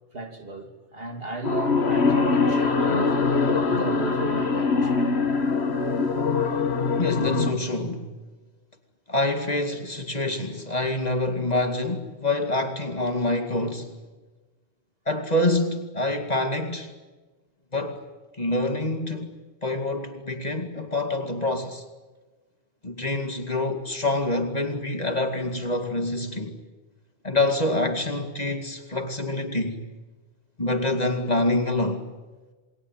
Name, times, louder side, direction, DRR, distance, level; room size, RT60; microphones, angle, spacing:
voice 1, 0.1-3.2 3.6-5.0, right 3 dB, 60° right, 3.2 m, -36 dB
sound 1, 1.4-7.5, left 4 dB, 75° left, 2.0 m, -23 dB
voice 2, 7.0-8.1 9.1-13.9 15.1-16.9 17.7-18.0 18.4-19.3 19.6-21.8 22.8-26.6 27.2-29.8 30.6-32.1, left 2 dB, 40° left, 2.4 m, -26 dB
28.5 x 21.0 x 9.2 m
omnidirectional pair, 1.1 m